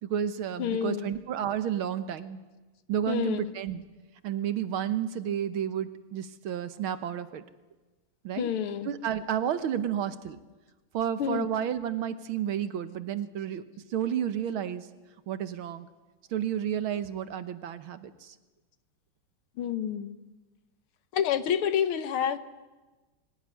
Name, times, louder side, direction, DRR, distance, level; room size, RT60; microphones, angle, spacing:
voice 1, 0.0-2.4 2.9-3.8 4.2-7.4 8.2-8.5 8.8-10.4 10.9-13.6 13.9-14.9 15.3-15.9 16.3-18.3, right 9 dB, 70° right, 1.9 m, -31 dB
voice 2, 0.6-1.1 3.1-3.5 8.4-8.9 11.2-11.5 19.6-20.2 21.1-22.4, left 9 dB, 75° left, 1.9 m, -28 dB
23.0 x 17.5 x 9.7 m
omnidirectional pair, 2.4 m